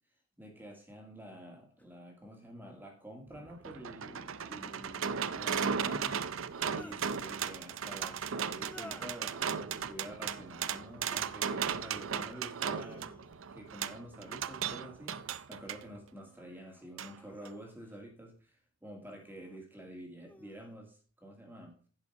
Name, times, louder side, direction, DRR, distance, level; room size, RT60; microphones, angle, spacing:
voice 1, 0.4-6.2 6.7-13.1 13.5-15.2 15.5-18.6 18.8-21.8, right 1 dB, 10° right, 2 dB, 2.3 m, -48 dB
sound 1, 1.8-1.9 4.2-4.8 6.3-7.0 8.6-9.3 10.8-11.3 11.8-12.3 12.7-13.6 14.8-15.4 16.0-18.1 19.1-19.6 20.2-20.8, left 1 dB, 5° left, 0.6 m, -56 dB
sound 2, 3.3-15.8 17.0-17.1 17.5-17.6, right 7 dB, 70° right, 0.5 m, -36 dB
11.0 x 5.5 x 5.5 m, 0.39 s
head